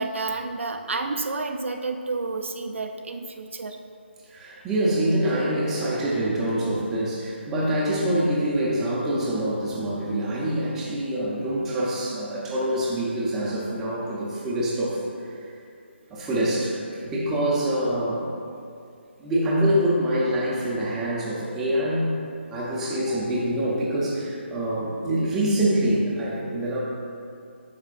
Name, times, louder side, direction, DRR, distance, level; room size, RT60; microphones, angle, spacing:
voice 1, 0.0-3.8, right 3 dB, 85° right, 5 dB, 0.6 m, -30 dB
voice 2, 4.3-15.3 16.1-18.3 19.2-22.1 22.5-26.8, right 1 dB, 5° right, -6 dB, 0.6 m, -25 dB
8.7 x 5.8 x 2.4 m, 2.4 s
hypercardioid pair, 170°, 7 cm